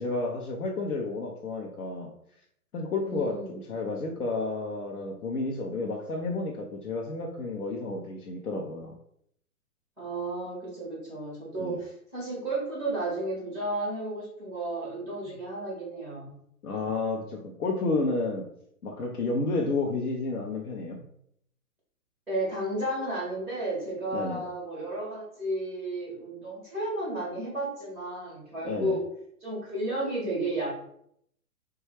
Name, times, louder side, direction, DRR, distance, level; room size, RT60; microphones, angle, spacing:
voice 1, 0.0-2.1 2.7-8.9 11.6-11.8 15.3-15.4 16.6-18.5 18.8-21.0 24.1-24.4 28.6-29.0, left 3 dB, 75° left, -1 dB, 0.7 m, -31 dB
voice 2, 3.0-3.6 10.0-16.4 22.3-29.0 29.4-30.7, right 1 dB, ahead, -4 dB, 0.4 m, -33 dB
3.2 x 2.2 x 3.3 m, 0.70 s
figure-of-eight pair, 120°, 45 cm